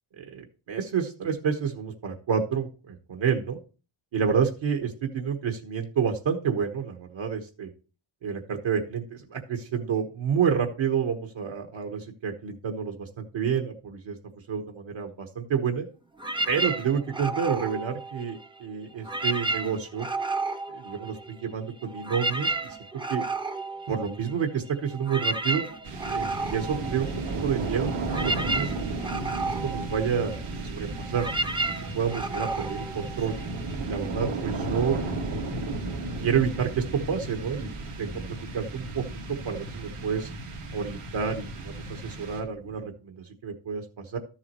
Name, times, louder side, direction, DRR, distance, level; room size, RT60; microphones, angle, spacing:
voice 1, 0.2-3.6 4.1-7.7 8.2-14.2 14.5-15.9 16.5-20.1 20.7-22.5 23.1-23.2 23.9-25.7 26.1-27.1 27.4-27.9 28.2-29.0 29.4-31.3 31.9-33.3 33.8-35.0 35.7-37.7 38.0-39.0 39.3-40.3 40.7-44.2, right 7 dB, 65° right, 4 dB, 1.3 m, -29 dB
sound 1, 16.2-18.6 19.0-21.5 21.8-33.7, right 2 dB, 10° right, 0.6 m, -32 dB
sound 2, 25.8-42.8, right 2 dB, 90° right, 2.5 m, -34 dB
13.0 x 7.3 x 3.0 m, 0.35 s
wide cardioid pair, 125°, 50 cm